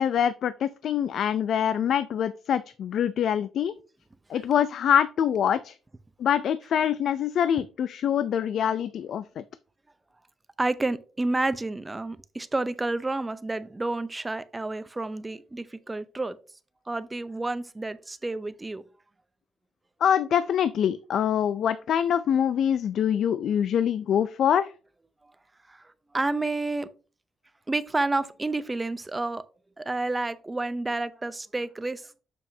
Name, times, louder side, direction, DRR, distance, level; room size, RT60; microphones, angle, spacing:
voice 1, 0.0-3.7 4.3-5.8 6.2-9.4 20.0-24.7, left 9 dB, 70° left, 0.3 m, -25 dB
voice 2, 10.6-16.4 16.9-18.8 25.2-25.3 25.7-26.9 27.7-29.4 29.8-32.1, right 2 dB, 20° right, 0.5 m, -30 dB
6.9 x 6.0 x 2.7 m
cardioid pair, 100°, 0 cm